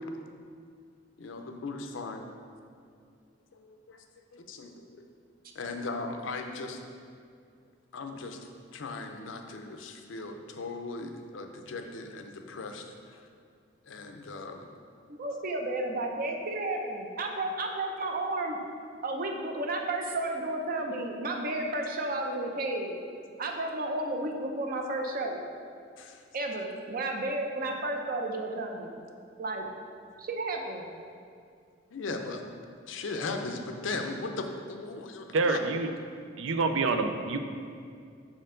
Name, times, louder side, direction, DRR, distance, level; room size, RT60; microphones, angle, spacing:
voice 1, 1.2-2.3 3.6-4.0 4.3-5.0 5.6-6.8 7.9-8.4 8.7-12.9 13.9-14.7 26.0-26.2 31.9-32.4 32.9-35.6, left 3 dB, 85° left, 5 dB, 0.5 m, -38 dB
voice 2, 15.2-18.6 19.0-23.0 23.4-25.4 26.3-29.0 29.4-29.7 30.2-30.9, right 2 dB, 50° right, 2 dB, 0.6 m, -32 dB
voice 3, 35.3-35.9 36.4-37.4, right 3 dB, 90° right, 7 dB, 0.4 m, -27 dB
6.1 x 4.4 x 3.8 m, 2.3 s
head